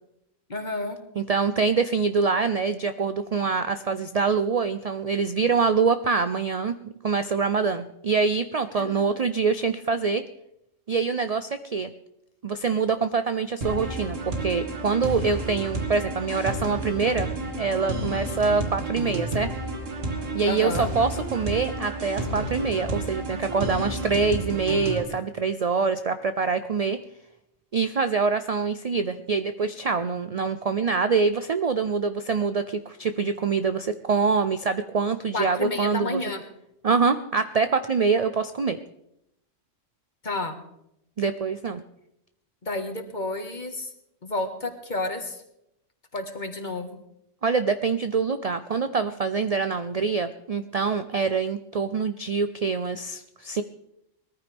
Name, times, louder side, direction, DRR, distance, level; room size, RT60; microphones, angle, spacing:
voice 1, 0.5-1.0 8.8-9.1 15.0-15.4 20.5-20.9 35.3-36.4 40.2-40.6 42.6-43.9 44.2-45.4 46.1-47.0, left 2 dB, 35° left, 4 dB, 1.8 m, -31 dB
voice 2, 1.2-10.2 10.9-11.9 12.4-17.3 17.6-19.5 20.3-27.0 27.7-36.2 36.8-38.8 41.2-41.8 47.4-53.6, right 5 dB, 55° right, 10 dB, 0.4 m, -25 dB
sound 1, 13.6-25.0, right 2 dB, 75° right, 2.3 m, -31 dB
21.0 x 14.0 x 3.5 m, 0.79 s
omnidirectional pair, 1.3 m